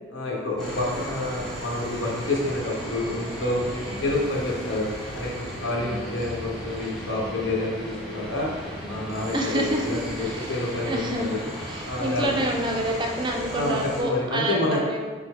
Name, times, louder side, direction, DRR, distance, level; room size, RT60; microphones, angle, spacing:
voice 1, 0.1-4.9 5.1-8.5 8.9-11.4 11.8-12.2 13.5-13.8 14.0-14.8, left 2 dB, 75° left, -2 dB, 0.9 m, -28 dB
sound 1, 0.6-14.0, equal, ahead, 0.9 m, -36 dB
voice 2, 9.3-11.3 11.7-15.0, right 1 dB, 25° right, 0 dB, 0.4 m, -29 dB
5.8 x 2.1 x 3.7 m, 1.4 s
head